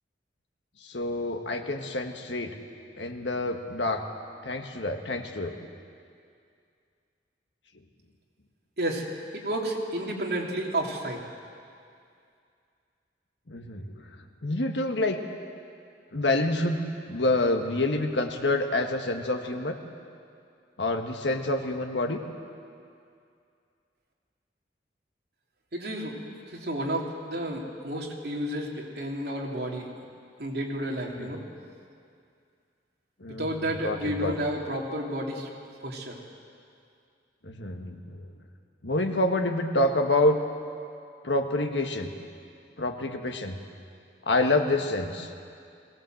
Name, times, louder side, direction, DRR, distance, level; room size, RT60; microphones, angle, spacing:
voice 1, 0.8-2.6 3.0-4.0 4.4-5.6 13.5-15.2 16.1-19.8 20.8-22.2 31.1-31.4 33.2-34.3 37.4-38.3 38.8-40.4 41.2-42.1 42.8-43.6 44.2-45.3, left 2 dB, 80° left, 5 dB, 1.6 m, -27 dB
voice 2, 9.3-11.2 25.7-26.1 26.6-29.8 30.4-31.4 33.4-35.5 35.8-36.1, right 1 dB, 60° right, -1 dB, 2.9 m, -31 dB
21.5 x 18.0 x 7.8 m, 2.4 s
head